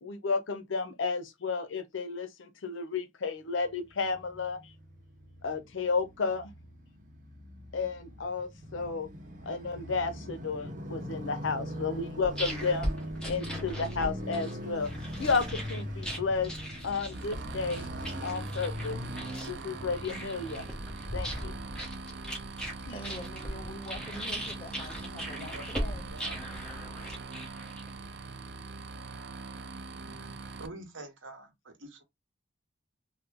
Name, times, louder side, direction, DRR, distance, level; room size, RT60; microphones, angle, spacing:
voice 1, 0.0-4.6 5.4-6.5 7.7-9.1 9.5-12.9 13.3-14.9 15.2-16.5 16.8-17.9 18.2-19.0 19.5-20.7 21.1-21.5, left 4 dB, 75° left, 0.6 m, -32 dB
Motorcycle, 4.0-22.2, equal, 40° right, 0.8 m, -41 dB
sound 1, 11.9-28.0, equal, 5° left, 0.9 m, -39 dB
sound 2, 17.1-30.7, right 3 dB, 60° right, 0.4 m, -42 dB
voice 2, 22.8-26.1, equal, 30° left, 0.8 m, -44 dB
voice 3, 25.3-26.6 29.9-32.0, right 2 dB, 80° right, 0.9 m, -47 dB
3.2 x 2.1 x 3.5 m
head